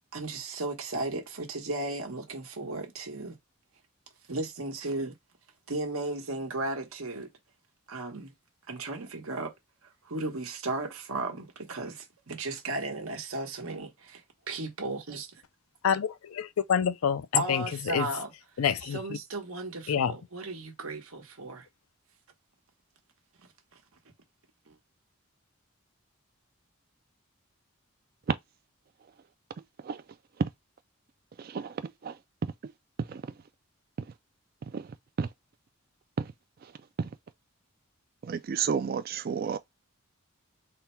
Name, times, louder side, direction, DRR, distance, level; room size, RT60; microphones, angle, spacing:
voice 1, 0.1-3.4 4.3-5.2 5.7-7.3 7.9-8.3 8.7-9.5 10.0-15.4 17.3-18.3 18.8-21.7 24.7-24.8, right 2 dB, 85° right, 1.1 m, -35 dB
voice 2, 15.8-17.6 17.9-18.1 18.6-19.2 19.9-20.1, left 8 dB, 85° left, 0.4 m, -27 dB
voice 3, 31.4-32.2 32.6-32.7 33.0-33.2 34.7-34.9 35.2-35.3 36.2-36.3 36.6-36.7 37.0-37.1 38.2-39.6, right 6 dB, 45° right, 0.3 m, -31 dB
3.6 x 2.2 x 4.3 m
head